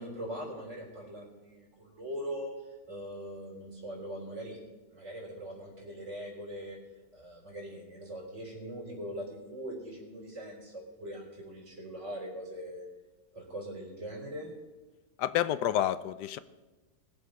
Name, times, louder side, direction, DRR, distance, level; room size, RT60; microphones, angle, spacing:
voice 1, 0.0-4.6 4.9-6.8 7.1-12.9 13.3-14.5, equal, 45° right, -2 dB, 3.9 m, -41 dB
voice 2, 15.2-16.4, left 12 dB, 90° left, 14 dB, 1.2 m, -29 dB
21.5 x 7.2 x 5.2 m, 1.1 s
omnidirectional pair, 1.8 m